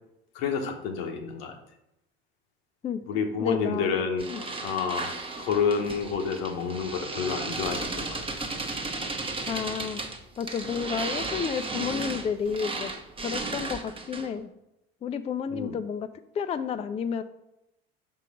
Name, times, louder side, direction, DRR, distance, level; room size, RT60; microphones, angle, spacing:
voice 1, 0.3-1.5 3.1-4.3 4.6-8.2 15.5-15.8, left 6 dB, 85° left, 4 dB, 1.0 m, -29 dB
voice 2, 2.8-4.0 4.3-4.4 9.5-10.0 10.4-12.9 13.2-14.5 15.0-16.1 16.4-17.2, left 7 dB, 20° left, 10 dB, 0.4 m, -31 dB
sound 1, 4.2-14.4, right 3 dB, 20° right, 0.8 m, -34 dB
5.6 x 3.8 x 5.0 m, 0.86 s
hypercardioid pair, 80°, 29 cm